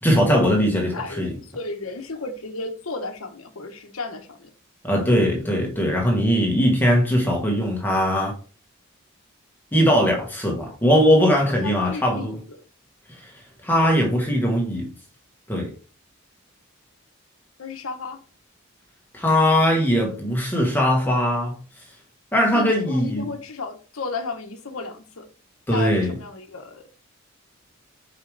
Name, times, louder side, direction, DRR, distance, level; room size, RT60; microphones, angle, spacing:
voice 1, 0.0-1.3 4.8-8.3 9.7-12.3 13.2-13.3 13.6-14.9 15.5-15.7 19.1-21.5 22.3-23.3 25.7-26.1, equal, 10° left, 1.2 m, -20 dB
voice 2, 0.9-4.5 11.5-12.6 17.6-18.2 22.5-25.2 25.7-26.8, left 3 dB, 85° left, 1.1 m, -33 dB
6.5 x 5.1 x 3.4 m
head